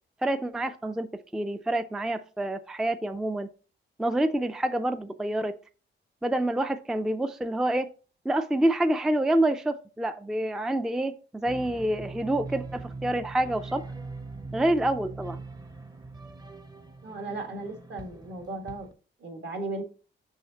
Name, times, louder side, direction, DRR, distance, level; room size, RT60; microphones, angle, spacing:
voice 1, 0.2-3.5 4.0-5.6 6.2-7.9 8.3-13.8 14.5-15.4, right 1 dB, 5° right, 10 dB, 0.3 m, -27 dB
sound 1, 11.4-18.9, right 3 dB, 20° right, 0.7 m, -41 dB
voice 2, 17.0-18.9 19.2-19.8, right 2 dB, 60° right, 4 dB, 1.7 m, -36 dB
6.4 x 6.2 x 2.8 m, 0.35 s
wide cardioid pair, 155°, 20 cm